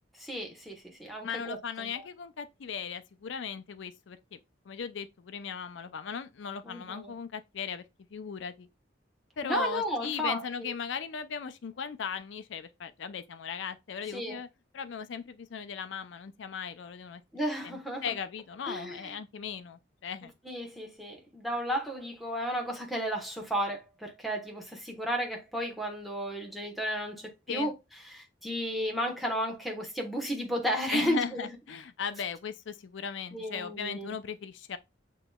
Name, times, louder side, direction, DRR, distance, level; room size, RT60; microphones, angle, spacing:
voice 1, 0.2-2.1 6.6-7.1 9.4-10.7 14.1-14.4 17.3-18.1 18.6-19.1 20.4-27.7 28.0-31.5 33.3-34.2, equal, ahead, 1.0 m, -33 dB
voice 2, 1.1-4.4 4.7-7.8 8.1-8.7 9.4-14.5 14.7-17.2 17.6-20.3 27.5-27.7 30.9-34.8, left 6 dB, 75° left, 0.4 m, -37 dB
7.5 x 3.0 x 2.2 m
head